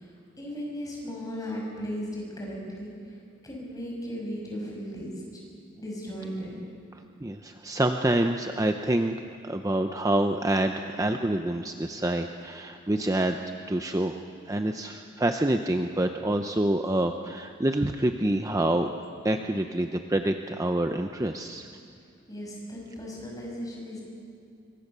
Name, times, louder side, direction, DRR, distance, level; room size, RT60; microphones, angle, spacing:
voice 1, 0.0-3.2 3.4-5.4 5.8-6.5 22.3-24.0, equal, 20° left, -2 dB, 6.5 m, -36 dB
voice 2, 7.2-13.4 13.7-14.2 14.5-18.9 19.2-21.7, right 1 dB, 15° right, 5 dB, 0.7 m, -27 dB
25.5 x 23.5 x 6.8 m, 2.4 s
head